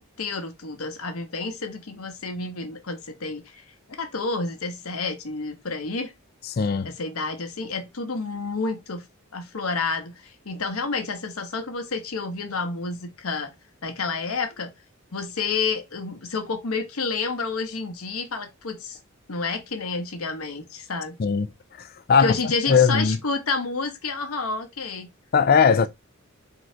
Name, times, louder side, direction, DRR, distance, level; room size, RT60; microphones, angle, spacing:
voice 1, 0.0-3.6 4.0-6.1 6.8-9.0 9.3-13.5 13.8-14.7 15.1-19.0 19.3-21.2 22.2-25.1 25.8-25.9, left 4 dB, 85° left, 1.0 m, -30 dB
voice 2, 6.5-6.9 21.2-21.5 21.8-22.3 22.7-23.2 25.3-25.9, left 6 dB, 45° left, 0.4 m, -19 dB
3.8 x 2.6 x 4.3 m
head